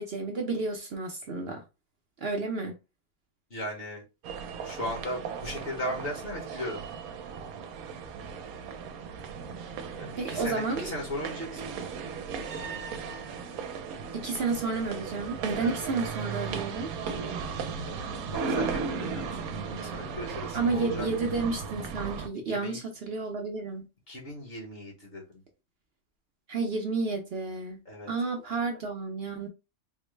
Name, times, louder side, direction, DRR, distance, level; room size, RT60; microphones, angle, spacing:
voice 1, 0.0-1.6 2.2-2.8 10.2-10.9 14.1-16.9 20.5-23.8 26.5-27.8 28.1-29.5, right 3 dB, 60° right, 0.7 m, -31 dB
voice 2, 3.5-4.0 4.6-6.9 10.0-11.8 15.6-15.8 17.8-18.0 18.3-21.1 22.5-22.8 24.1-25.4 27.8-28.1, equal, 45° left, 1.1 m, -37 dB
sound 1, 4.2-22.3, right 5 dB, 80° right, 1.1 m, -36 dB
3.8 x 2.0 x 3.1 m
omnidirectional pair, 1.5 m